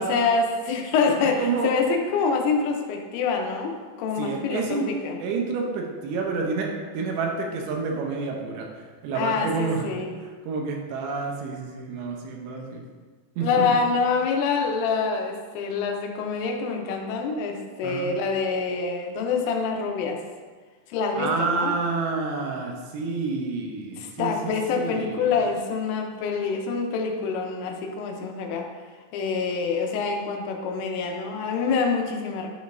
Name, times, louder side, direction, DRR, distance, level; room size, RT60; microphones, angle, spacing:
voice 1, 0.0-3.7 4.0-5.2 9.1-10.1 13.4-20.2 20.9-21.8 24.0-28.7 29.1-32.5, left 5 dB, 80° left, 2 dB, 3.3 m, -26 dB
voice 2, 1.4-1.7 4.2-4.9 5.2-8.7 9.0-9.9 10.4-12.8 13.4-13.7 17.8-18.1 21.2-25.3, right 4 dB, 75° right, 1 dB, 2.8 m, -29 dB
12.0 x 5.0 x 2.6 m, 1.4 s
omnidirectional pair, 5.8 m